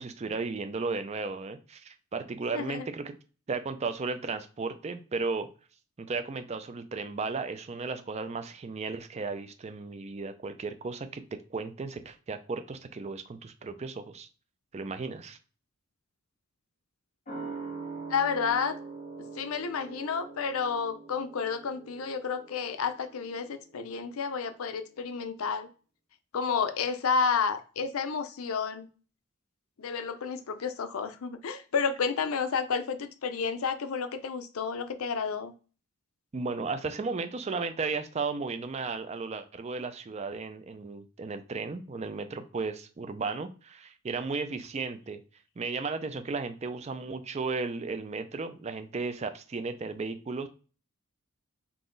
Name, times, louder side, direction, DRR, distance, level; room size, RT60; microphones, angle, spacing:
voice 1, 0.0-3.1 3.5-5.5 6.0-11.2 11.5-14.3 14.7-15.4 36.3-45.2 45.6-50.5, right 4 dB, 30° right, 9 dB, 0.4 m, -35 dB
voice 2, 2.5-2.9 18.1-18.8 19.3-25.7 26.3-28.9 29.8-35.5, left 5 dB, 70° left, 11 dB, 0.5 m, -31 dB
sound 1, 17.3-24.3 24.6-24.7, right 4 dB, 35° left, 1.5 m, -43 dB
3.8 x 2.9 x 3.8 m, 0.37 s
head